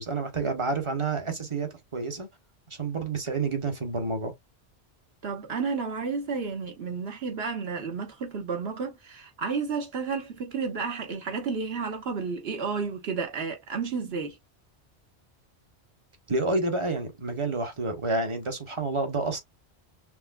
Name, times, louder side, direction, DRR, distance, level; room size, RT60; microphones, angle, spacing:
voice 1, 0.0-2.3 2.7-4.3 16.3-19.4, right 3 dB, 30° right, 0.9 m, -29 dB
voice 2, 5.2-14.4, right 5 dB, 70° right, 1.3 m, -31 dB
5.9 x 2.1 x 2.2 m
omnidirectional pair, 1.1 m